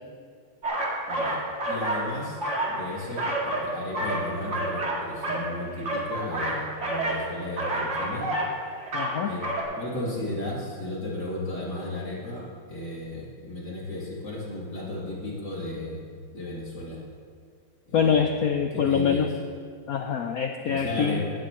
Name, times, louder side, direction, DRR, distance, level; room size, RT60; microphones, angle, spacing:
sound 1, 0.6-2.1 2.3-3.7 3.9-5.5 5.8-7.2 7.6-8.5 8.8-9.2 9.4-9.6, right 1 dB, 35° right, 2.1 m, -29 dB
voice 1, 1.1-1.4 1.7-2.4 2.7-8.3 9.2-9.4 9.7-16.0 16.3-17.0 17.9-18.3 18.7-19.3 20.6-21.2, left 1 dB, 55° left, -6 dB, 3.3 m, -34 dB
voice 2, 8.9-9.3 17.9-19.3 19.9-21.2, left 7 dB, 85° left, 5 dB, 0.8 m, -24 dB
15.5 x 11.5 x 3.1 m, 2.1 s
omnidirectional pair, 2.2 m